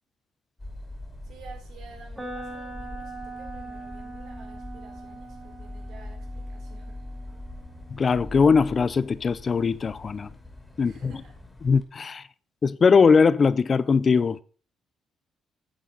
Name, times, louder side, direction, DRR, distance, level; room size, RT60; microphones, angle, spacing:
sound 1, 0.6-11.8, left 1 dB, 15° left, 2.7 m, -42 dB
voice 1, 1.2-7.0 10.8-11.3, right 5 dB, 75° right, 4.0 m, -51 dB
sound 2, 2.1-10.1, right 2 dB, 15° right, 3.3 m, -43 dB
voice 2, 7.9-10.3 10.8-11.1 11.6-12.2 12.6-14.4, left 5 dB, 40° left, 0.5 m, -20 dB
9.3 x 8.8 x 4.0 m
cardioid pair, 90°, 0 cm